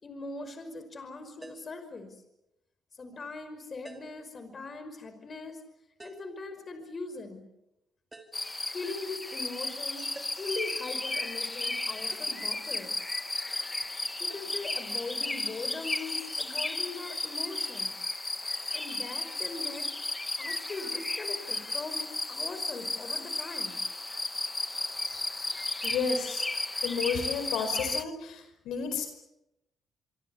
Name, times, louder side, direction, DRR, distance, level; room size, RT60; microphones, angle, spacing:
voice 1, 0.0-2.2 2.9-5.6 6.0-7.4 8.7-12.9 14.2-17.9 18.7-19.9 20.4-23.8, left 3 dB, 40° left, 9 dB, 5.4 m, -40 dB
sound 1, 1.4-1.8 3.9-4.3 6.0-6.4 8.1-8.5 10.1-10.6 12.1-12.4 14.3-14.5, right 2 dB, 15° right, 3.9 m, -49 dB
sound 2, 8.3-28.0, left 2 dB, 20° left, 1.2 m, -34 dB
voice 2, 25.8-26.4 26.8-29.1, left 5 dB, 80° left, 8 dB, 5.1 m, -31 dB
27.0 x 24.5 x 7.1 m, 0.89 s
cardioid pair, 90°, 0 cm